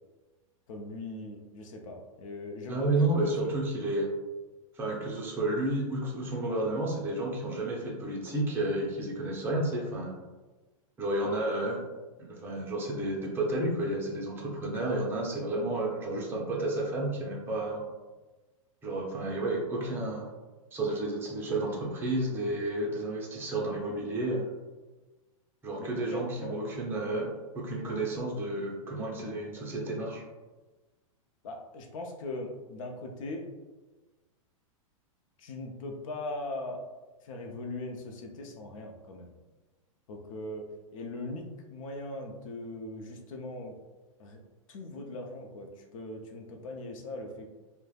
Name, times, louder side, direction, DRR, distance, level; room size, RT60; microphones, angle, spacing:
voice 1, 0.7-2.9 25.8-26.6 31.4-33.5 35.4-36.8 37.2-39.3 40.1-40.6 40.9-43.8 44.2-44.4 44.7-47.5, left 2 dB, 65° left, 2 dB, 0.6 m, -40 dB
voice 2, 2.7-4.1 4.7-10.1 11.0-11.8 12.2-17.8 18.8-20.3 20.7-24.5 25.6-27.3 27.5-30.2, right 2 dB, 10° right, -3 dB, 0.5 m, -31 dB
3.1 x 2.1 x 2.3 m, 1.2 s
hypercardioid pair, 125°, 18 cm